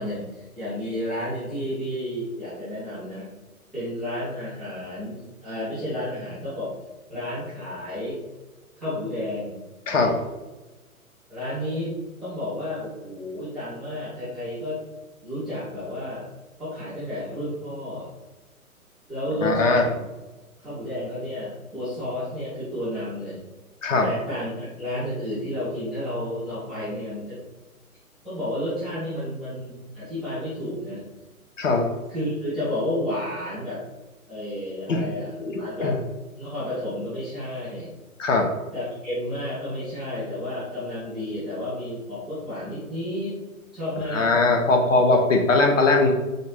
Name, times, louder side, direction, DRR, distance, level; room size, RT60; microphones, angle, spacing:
voice 1, 0.0-3.3 3.7-6.7 7.1-8.2 8.8-9.5 11.3-11.9 12.2-14.8 15.2-16.3 16.6-18.1 19.1-20.0 20.6-23.4 24.0-27.4 28.2-31.0 32.1-33.8 34.3-36.0 36.4-37.9 38.7-43.4 43.7-44.4, left 1 dB, ahead, -16 dB, 0.5 m, -31 dB
voice 2, 9.9-10.2 19.4-19.8 23.8-24.1 31.6-31.9 34.9-35.0 35.4-36.0 38.2-38.5 44.1-46.1, left 3 dB, 60° left, 3 dB, 0.8 m, -20 dB
4.0 x 2.6 x 3.3 m, 1.1 s
figure-of-eight pair, 125°, 44 cm